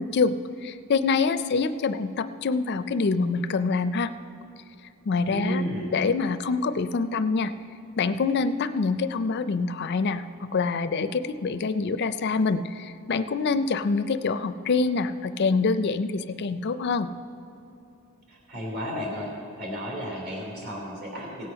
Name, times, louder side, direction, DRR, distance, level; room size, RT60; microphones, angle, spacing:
voice 1, 0.0-4.1 5.1-5.6 5.9-7.5 8.0-17.1, left 4 dB, 50° left, 12 dB, 0.4 m, -25 dB
voice 2, 5.3-5.9 18.3-19.3 19.6-21.5, equal, 50° right, -2 dB, 3.2 m, -32 dB
17.5 x 7.9 x 5.6 m, 2.6 s
head